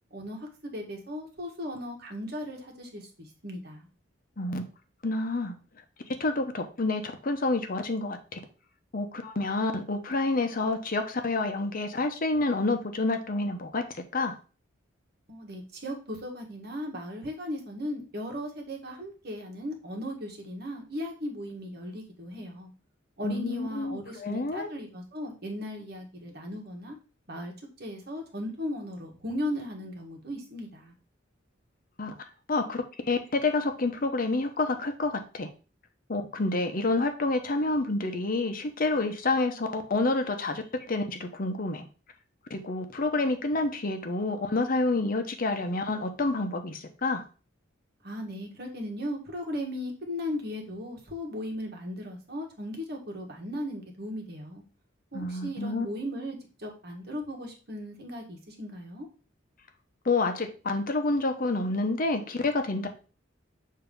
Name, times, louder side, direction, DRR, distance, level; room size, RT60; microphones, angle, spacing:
voice 1, 0.1-3.9 15.3-22.7 23.2-26.9 27.3-27.5 27.8-30.9 48.0-54.6 55.1-59.1, left 1 dB, 55° right, 2 dB, 1.5 m, -37 dB
voice 2, 5.0-5.5 6.2-8.4 8.9-13.8 14.1-14.3 23.2-24.7 32.0-32.1 32.5-35.5 36.1-41.9 42.5-47.2 55.1-55.9 60.0-62.9, left 2 dB, 45° left, 6 dB, 0.8 m, -28 dB
7.0 x 2.8 x 5.2 m, 0.36 s
head